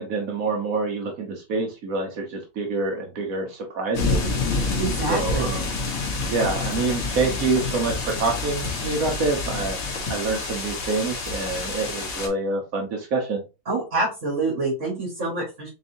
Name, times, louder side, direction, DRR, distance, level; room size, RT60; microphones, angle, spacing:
voice 1, 0.0-4.3 5.1-5.7 6.3-9.8 10.1-13.4, right 3 dB, 70° right, 2 dB, 1.3 m, -26 dB
sound 1, 3.9-12.3, left 3 dB, 70° left, 1.7 m, -28 dB
voice 2, 4.8-5.5 13.7-15.7, right 3 dB, 55° right, -3 dB, 2.1 m, -26 dB
4.3 x 4.0 x 2.7 m, 0.28 s
omnidirectional pair, 1.5 m